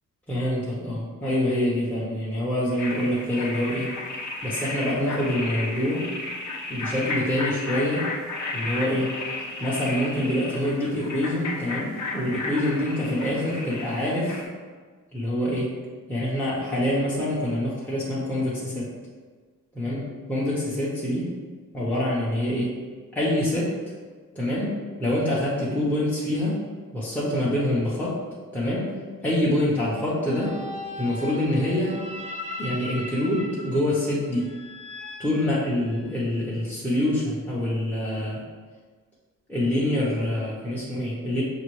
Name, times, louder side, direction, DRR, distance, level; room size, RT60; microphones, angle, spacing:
voice 1, 0.3-3.9 4.4-6.1 6.7-8.1 8.5-9.2 9.6-14.4 15.1-15.7 16.1-18.9 19.7-20.0 20.3-21.3 21.7-22.7 23.1-23.7 24.3-24.7 25.0-26.6 26.9-28.2 28.5-28.9 29.2-30.5 31.0-32.0 32.6-34.5 35.2-38.4 39.5-41.4, left 1 dB, 5° left, -8 dB, 0.9 m, -25 dB
sound 1, 2.8-14.4, left 2 dB, 55° left, 0.9 m, -33 dB
sound 2, 30.2-36.2, left 2 dB, 20° right, 0.5 m, -38 dB
5.7 x 2.4 x 3.1 m, 1.5 s
cardioid pair, 95°, 34 cm